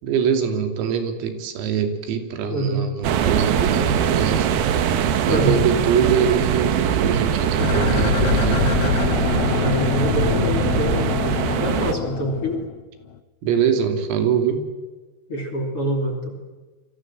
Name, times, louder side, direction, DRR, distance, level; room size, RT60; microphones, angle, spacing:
voice 1, 0.0-4.8 5.2-8.7 13.4-14.7, right 7 dB, 85° right, 6 dB, 5.3 m, -23 dB
voice 2, 2.5-2.9 5.3-5.6 9.6-11.1 11.6-12.6 15.3-16.3, right 1 dB, 35° left, 2 dB, 3.0 m, -24 dB
sound 1, 3.0-11.9, right 8 dB, 65° right, 2.5 m, -22 dB
sound 2, 7.6-12.8 13.1-13.2, left 10 dB, 85° left, 3.9 m, -25 dB
29.0 x 24.5 x 7.5 m, 1.2 s
omnidirectional pair, 5.9 m